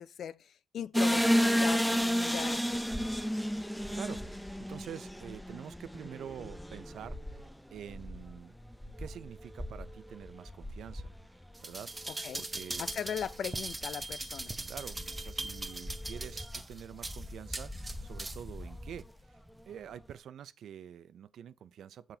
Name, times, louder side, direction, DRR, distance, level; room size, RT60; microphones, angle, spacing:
voice 1, 0.0-2.6 12.1-12.4 12.8-14.5, left 8 dB, 70° left, 0.4 m, -39 dB
sound 1, 0.9-11.8 12.1-12.2 12.7-12.9 13.2-13.9 14.4-19.1, equal, 5° left, 0.4 m, -34 dB
Telephone, 2.1-2.4 2.9-4.4 5.9-7.4 8.9-10.4 11.9-13.4 14.9-16.4, right 2 dB, 45° right, 1.0 m, -56 dB
voice 2, 3.9-8.5 9.0-11.1 11.6-11.9 12.4-12.8 14.7-19.1 19.7-22.2, right 9 dB, 75° right, 0.5 m, -46 dB
sound 2, 11.5-18.5 19.0-19.1, right 2 dB, 20° right, 0.8 m, -40 dB
6.9 x 5.7 x 2.8 m
cardioid pair, 90°, 0 cm